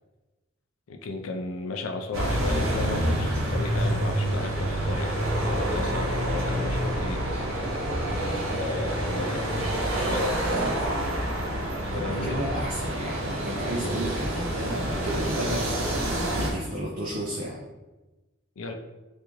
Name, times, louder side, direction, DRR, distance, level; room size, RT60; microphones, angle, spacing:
voice 1, 0.9-5.1 5.5-7.6 8.5-9.7 10.0-10.8 11.8-12.4 18.6-18.7, left 3 dB, 85° left, 4 dB, 0.4 m, -35 dB
sound 1, 2.1-16.5, right 1 dB, 90° right, 0.7 m, -27 dB
voice 2, 11.9-17.6, right 1 dB, 45° right, -3 dB, 0.4 m, -32 dB
3.6 x 2.4 x 3.0 m, 1.1 s
head